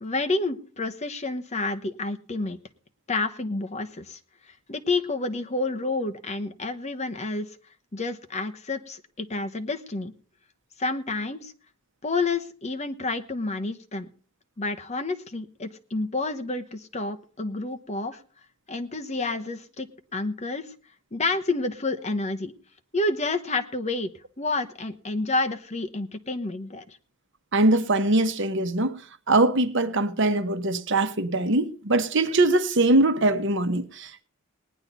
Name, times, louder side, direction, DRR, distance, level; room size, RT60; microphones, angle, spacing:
voice 1, 0.0-2.6 3.1-4.2 4.7-7.6 7.9-10.1 10.8-11.5 12.0-14.1 14.6-18.2 18.7-19.9 20.1-20.7 21.1-22.5 22.9-24.1 24.4-27.0, left 3 dB, 35° left, 1.0 m, -29 dB
voice 2, 27.5-28.9 29.3-34.2, right 2 dB, 60° right, 1.1 m, -22 dB
18.5 x 10.5 x 4.0 m
head